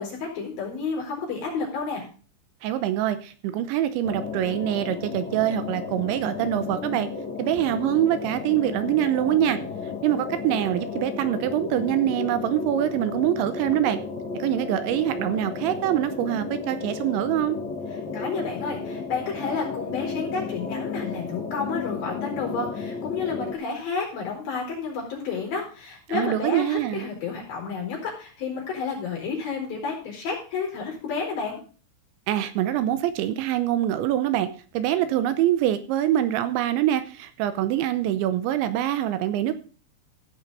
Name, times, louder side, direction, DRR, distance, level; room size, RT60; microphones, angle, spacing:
voice 1, 0.0-2.0 18.1-31.6, left 4 dB, 50° left, -1 dB, 5.8 m, -31 dB
voice 2, 2.6-7.1 7.4-9.6 10.0-14.0 14.3-17.6 26.1-27.1 32.3-34.5 34.7-39.5, right 12 dB, 80° right, 12 dB, 3.0 m, -24 dB
sound 1, 4.0-23.5, left 5 dB, 80° left, 0.9 m, -33 dB
16.0 x 5.6 x 5.3 m, 0.38 s
omnidirectional pair, 5.4 m